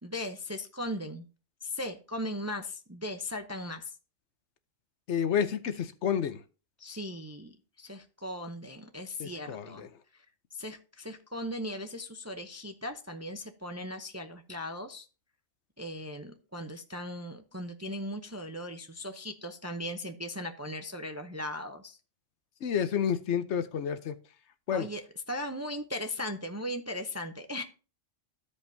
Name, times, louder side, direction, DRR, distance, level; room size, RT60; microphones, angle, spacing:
voice 1, 0.0-1.2 1.6-3.8 6.8-9.8 10.5-15.1 15.8-22.0 24.7-25.0 25.3-27.6, left 1 dB, 20° right, 0.5 m, -38 dB
voice 2, 5.1-6.4 9.2-9.9 22.6-24.1 24.7-24.9, left 8 dB, 65° left, 1.0 m, -30 dB
14.5 x 5.2 x 2.7 m
omnidirectional pair, 1.3 m